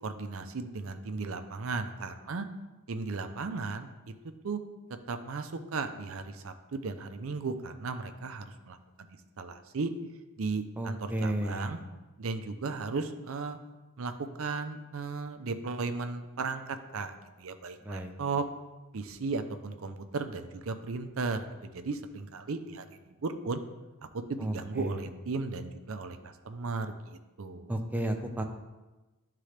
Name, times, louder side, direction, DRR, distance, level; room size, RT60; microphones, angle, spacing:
voice 1, 0.0-2.5 2.9-4.1 4.4-4.6 5.1-9.1 9.4-9.9 10.4-11.8 12.2-13.6 14.0-14.1 14.4-18.5 18.9-23.6 24.1-27.7, right 4 dB, 65° right, 9 dB, 0.5 m, -36 dB
voice 2, 10.8-11.8 17.8-18.1 24.4-25.0 27.7-28.4, right 1 dB, 10° right, 3 dB, 0.5 m, -33 dB
11.0 x 3.8 x 3.3 m, 1.2 s
head